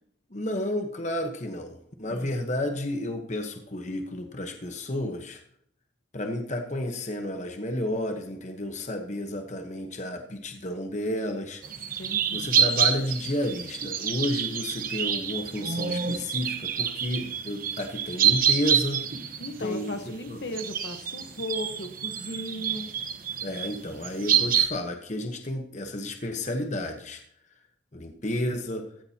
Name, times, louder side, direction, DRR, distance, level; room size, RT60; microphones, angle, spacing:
voice 1, 0.3-5.4 6.1-11.6 12.3-19.1 19.6-20.4 23.4-27.2 27.9-28.9, left 1 dB, 35° left, 4 dB, 1.1 m, -31 dB
voice 2, 2.1-2.4 12.0-12.5 19.4-22.9, left 1 dB, 60° left, 7 dB, 1.2 m, -36 dB
sound 1, 11.6-20.1 20.5-24.7, right 8 dB, 45° right, 1.0 m, -27 dB
15.5 x 14.5 x 2.9 m, 0.68 s
head